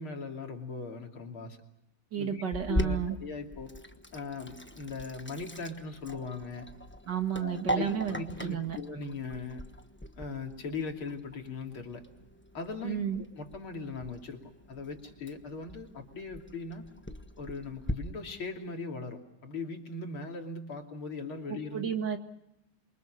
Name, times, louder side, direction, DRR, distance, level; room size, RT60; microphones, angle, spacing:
voice 1, 0.0-1.6 2.2-2.4 2.7-3.7 4.1-6.7 7.4-9.6 10.2-12.0 12.5-16.8 17.4-21.9, left 4 dB, 80° left, 3 dB, 3.7 m, -39 dB
voice 2, 2.1-3.2 7.1-8.1 8.4-8.8 12.8-13.2 21.7-22.2, right 8 dB, 55° right, 6 dB, 2.4 m, -31 dB
Sink (filling or washing), 2.5-17.9, equal, 10° left, 0.8 m, -40 dB
28.0 x 24.5 x 6.4 m, 0.86 s
omnidirectional pair, 2.3 m